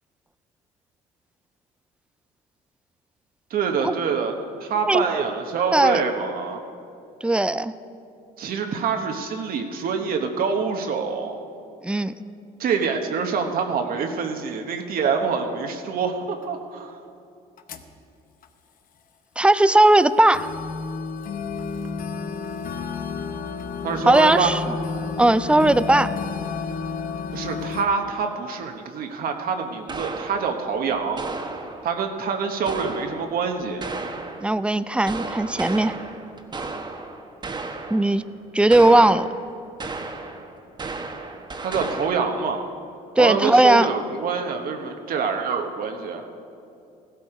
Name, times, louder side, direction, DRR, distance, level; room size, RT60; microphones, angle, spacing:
voice 1, 3.5-4.3 4.6-6.6 8.4-11.4 12.6-17.0 23.8-24.5 27.3-31.2 31.8-33.8 41.6-42.6 43.2-46.2, right 5 dB, 60° right, 4 dB, 1.2 m, -26 dB
voice 2, 5.7-6.0 7.2-7.7 11.8-12.1 19.4-20.5 24.0-24.6 25.2-26.1 34.4-36.0 37.9-38.2 38.5-39.3 43.2-43.9, right 1 dB, 5° right, 14 dB, 0.4 m, -17 dB
sound 1, 16.4-16.5 17.6-17.9 18.4-18.5 19.6-19.7 20.3-27.8, left 5 dB, 55° left, 0.9 m, -31 dB
sound 2, 29.9-32.0 32.7-34.6 35.1-38.2 38.7-39.5 39.8-42.5, right 3 dB, 25° right, 1.2 m, -34 dB
16.5 x 12.5 x 5.0 m, 2.5 s
cardioid pair, 110°, 17 cm